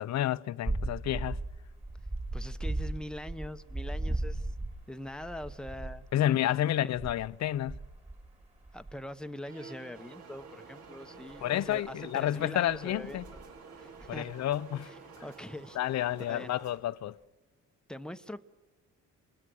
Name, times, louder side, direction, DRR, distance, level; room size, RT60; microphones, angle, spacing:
voice 1, 0.0-1.4 6.1-7.8 11.4-13.2 14.1-14.9 15.8-17.2, left 12 dB, 65° left, 0.7 m, -30 dB
sound 1, 0.6-6.1 6.9-9.0 11.3-11.9 12.7-13.6 13.9-14.3, right 2 dB, 20° right, 2.8 m, -37 dB
voice 2, 2.3-4.5 4.9-6.1 6.6-6.9 8.7-13.4 13.8-14.4 14.8-15.8 16.2-16.5 17.9-18.4, left 1 dB, 5° left, 1.0 m, -43 dB
sound 2, 9.4-15.5, right 5 dB, 55° right, 2.0 m, -53 dB
sound 3, 9.9-16.8, right 4 dB, 70° right, 3.2 m, -53 dB
27.0 x 21.0 x 6.4 m
cardioid pair, 90°, 30 cm